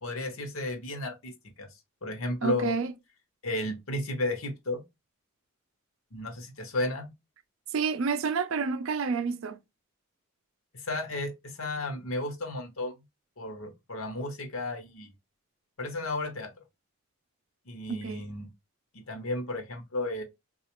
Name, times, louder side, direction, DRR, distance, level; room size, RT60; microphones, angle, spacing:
voice 1, 0.0-1.3 1.6-1.7 2.0-2.7 3.4-4.8 6.1-7.1 10.8-12.9 13.4-15.1 15.8-16.6 17.7-18.5 19.1-20.2, left 2 dB, 70° left, 0.9 m, -33 dB
voice 2, 2.4-2.9 7.7-9.6 17.9-18.2, right 5 dB, 65° right, 0.4 m, -29 dB
3.9 x 2.4 x 2.9 m
head